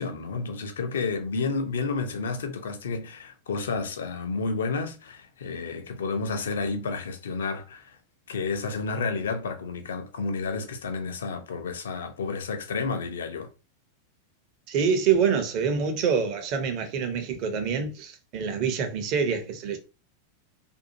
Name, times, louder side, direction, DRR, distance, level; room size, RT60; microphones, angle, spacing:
voice 1, 0.0-8.0 8.3-13.5, left 4 dB, 65° left, 0.6 m, -31 dB
voice 2, 14.7-19.8, right 6 dB, 40° right, 0.7 m, -26 dB
2.6 x 2.4 x 2.7 m
figure-of-eight pair, 90°, 0 cm